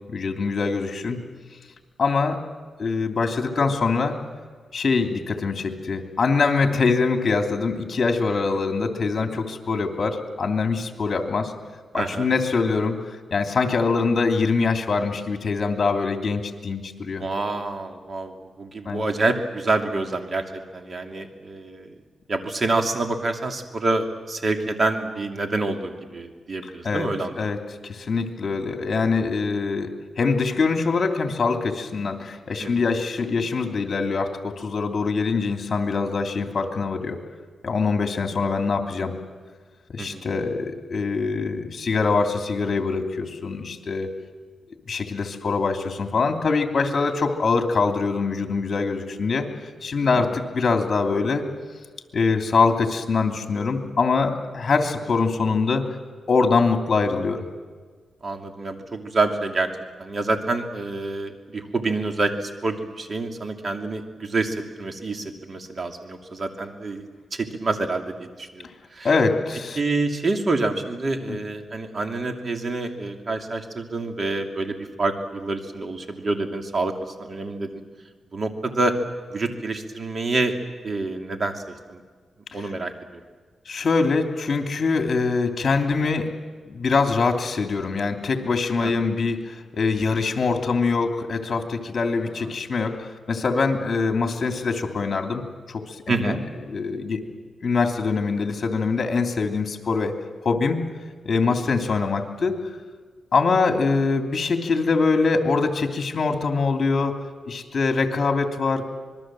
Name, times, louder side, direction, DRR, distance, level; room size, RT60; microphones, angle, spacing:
voice 1, 0.1-1.2 2.0-2.4 2.8-4.2 4.7-11.5 11.9-13.0 13.3-17.2 18.8-19.1 26.8-27.1 27.4-37.2 37.6-39.1 39.9-44.1 44.9-49.5 49.8-51.4 52.1-55.9 56.3-57.5 69.0-69.8 71.3-71.4 83.7-86.3 86.7-96.3 96.7-97.2 97.6-100.2 100.4-100.8 101.2-102.5 103.3-108.9, left 4 dB, 50° left, 4 dB, 2.9 m, -23 dB
voice 2, 11.9-12.3 17.0-21.9 22.3-27.4 32.6-32.8 40.0-40.2 50.1-50.4 58.2-59.7 60.0-68.6 68.9-69.1 69.8-76.9 77.2-77.8 78.3-78.9 79.3-80.5 80.8-81.6 81.9-82.0 82.5-82.9 88.8-89.1 92.4-92.5 96.1-96.4 101.4-101.5, right 3 dB, 45° right, 4 dB, 2.8 m, -27 dB
26.0 x 21.5 x 7.6 m, 1.5 s
cardioid pair, 80°, 0 cm